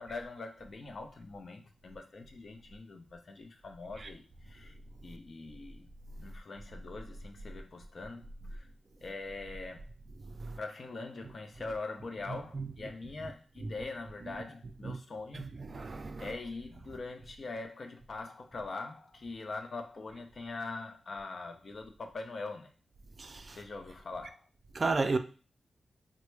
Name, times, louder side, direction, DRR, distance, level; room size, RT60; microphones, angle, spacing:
voice 1, 0.0-4.8 5.0-5.9 6.2-8.7 9.0-9.9 10.6-15.5 16.2-22.7 23.5-24.5, left 3 dB, 60° left, 0.5 m, -43 dB
voice 2, 15.3-16.3 23.2-23.6 24.7-25.2, right 3 dB, 50° right, 0.3 m, -33 dB
3.3 x 2.0 x 3.2 m
cardioid pair, 70°, 0 cm